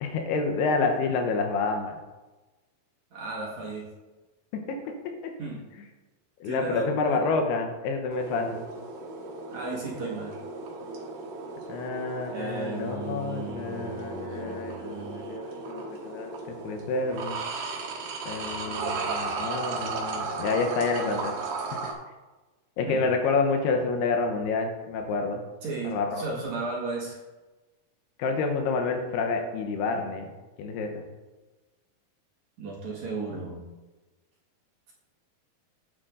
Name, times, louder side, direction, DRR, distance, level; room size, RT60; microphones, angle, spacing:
voice 1, 0.0-2.0 6.4-8.6 11.7-17.4 18.3-21.3 21.8-21.9 22.8-25.4 25.8-26.2 28.2-30.3 30.6-31.1, left 4 dB, 80° left, 4 dB, 3.0 m, -28 dB
voice 2, 3.1-3.9 5.4-5.6 6.4-7.2 9.5-10.3 12.3-15.6 22.9-23.0 25.6-27.2 32.6-33.6, right 3 dB, 50° right, -4 dB, 2.8 m, -35 dB
sound 1, 8.1-21.9, right 4 dB, 70° right, 3.0 m, -35 dB
10.5 x 7.8 x 3.8 m, 1.2 s
omnidirectional pair, 4.7 m